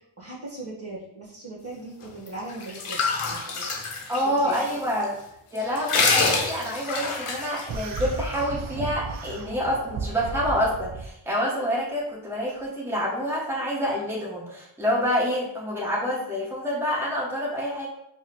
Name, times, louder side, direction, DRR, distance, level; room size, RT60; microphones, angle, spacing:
voice 1, 0.0-3.8 4.2-4.6, right 2 dB, 30° right, -5 dB, 1.3 m, -39 dB
sound 1, 2.3-4.7 5.0-5.1 5.5-8.0, left 4 dB, 85° left, 0.8 m, -26 dB
voice 2, 4.1-5.2 5.5-17.9, equal, 5° right, -6 dB, 1.1 m, -27 dB
sound 2, 7.7-11.1, right 4 dB, 45° right, 0.5 m, -34 dB
4.6 x 2.2 x 2.9 m, 0.80 s
cardioid pair, 45°, 50 cm